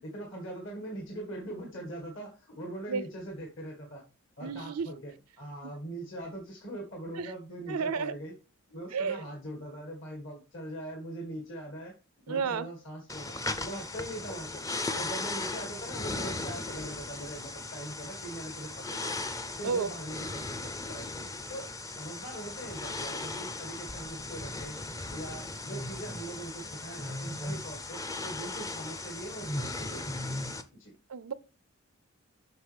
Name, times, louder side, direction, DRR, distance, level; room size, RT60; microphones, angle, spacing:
voice 1, 0.0-4.1 4.4-8.3 8.7-12.0 12.3-13.4 13.6-14.6 14.9-19.2 19.5-21.1 21.5-24.8 25.1-30.4 30.7-30.9, right 1 dB, 60° left, 1.7 m, -41 dB
voice 2, 4.4-4.9 7.2-7.3 7.7-8.2 8.9-9.2 12.3-12.7 19.6-19.9 31.1-31.3, right 5 dB, 85° right, 0.5 m, -31 dB
Normal soft breathing, 13.1-30.6, left 2 dB, 15° left, 0.5 m, -37 dB
8.1 x 6.0 x 3.4 m
head